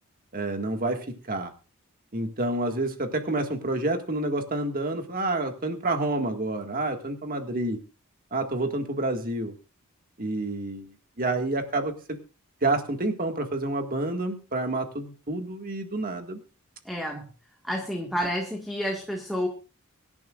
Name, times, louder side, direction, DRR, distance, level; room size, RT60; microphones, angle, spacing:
voice 1, 0.3-1.5 2.1-7.8 8.3-9.5 10.2-12.2 12.6-16.4, right 2 dB, 40° right, 5 dB, 1.9 m, -29 dB
voice 2, 16.9-17.3 17.6-19.5, equal, ahead, 1 dB, 1.7 m, -29 dB
24.0 x 11.0 x 2.5 m, 0.35 s
head